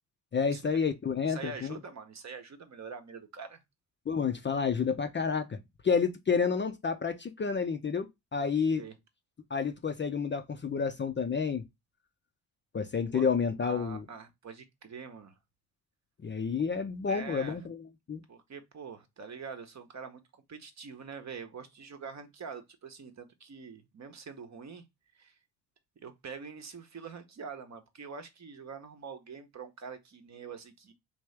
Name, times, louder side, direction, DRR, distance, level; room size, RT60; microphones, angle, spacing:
voice 1, 0.3-1.8 4.1-5.6 5.8-8.8 9.5-11.6 12.7-14.0 16.2-17.8 18.1-18.2, left 6 dB, 25° left, 0.6 m, -30 dB
voice 2, 1.2-3.6 8.8-9.0 13.1-13.3 13.6-15.4 17.1-17.6 18.3-24.8 25.1-25.4 26.0-30.9, right 5 dB, 35° right, 0.9 m, -45 dB
3.4 x 2.7 x 3.2 m
hypercardioid pair, 50°, 46 cm